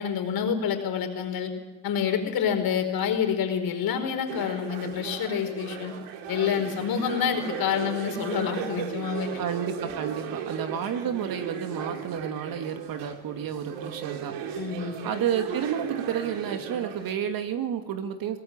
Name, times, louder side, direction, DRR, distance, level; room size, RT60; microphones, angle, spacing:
voice 1, 0.0-1.5 1.8-5.9 6.3-9.3 14.5-15.2, left 7 dB, 50° left, 5 dB, 4.8 m, -28 dB
sound 1, 4.3-17.1, right 8 dB, 75° right, 2.9 m, -36 dB
voice 2, 9.4-14.3 15.0-18.4, right 8 dB, 50° right, 7 dB, 2.5 m, -30 dB
22.5 x 17.5 x 8.8 m, 1.0 s
supercardioid pair, 95°, 44 cm